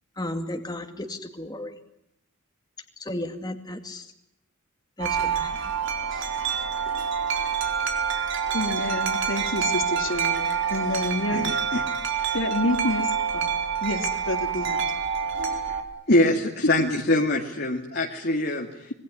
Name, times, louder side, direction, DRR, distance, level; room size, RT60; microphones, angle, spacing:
voice 1, 0.2-1.8 3.0-4.1 5.0-5.7 6.1-6.3, left 1 dB, 20° left, 5 dB, 2.3 m, -34 dB
Wind chime, 5.0-15.8, right 6 dB, 60° right, 4.5 m, -27 dB
voice 2, 8.5-11.6 12.3-13.5 13.8-14.8, left 2 dB, 70° left, 5 dB, 3.3 m, -29 dB
voice 3, 11.3-11.8 12.2-12.4 15.7-15.8 16.1-18.9, left 1 dB, 50° left, 1 dB, 2.3 m, -24 dB
26.0 x 22.0 x 9.9 m, 0.82 s
head